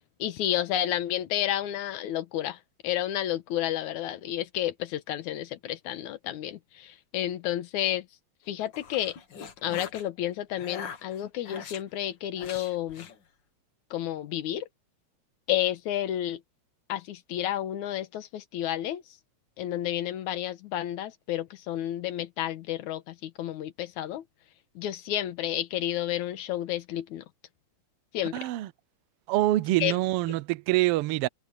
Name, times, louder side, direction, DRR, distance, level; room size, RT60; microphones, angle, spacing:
voice 1, 0.2-2.6 2.8-8.0 8.5-9.2 9.6-13.1 13.9-14.7 15.5-16.4 16.9-19.0 19.6-24.2 24.8-27.2 28.1-28.4 29.8-29.9, left 12 dB, 80° left, 2.6 m, -31 dB
sound 1, 8.5-10.1 10.5-11.8 12.4-13.2, left 7 dB, 45° left, 1.8 m, -42 dB
voice 2, 28.3-28.7 29.3-31.3, right 16 dB, 80° right, 1.3 m, -25 dB
omnidirectional pair, 3.3 m